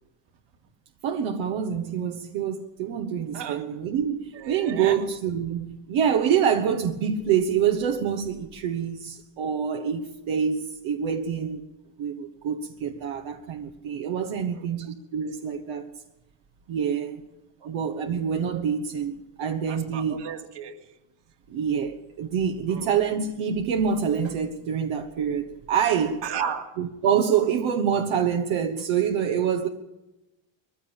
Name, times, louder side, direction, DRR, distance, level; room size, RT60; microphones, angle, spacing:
voice 1, 1.0-11.6 12.0-15.8 16.7-17.2 17.6-20.2 21.5-26.2 26.8-29.7, right 7 dB, 85° right, 1.3 m, -26 dB
voice 2, 3.3-3.7 4.3-5.0 14.5-14.6 17.6-17.8 19.7-20.9 22.7-22.9 26.2-26.7, right 7 dB, 60° right, 2.4 m, -34 dB
21.0 x 15.5 x 8.8 m
cardioid pair, 105°, 46 cm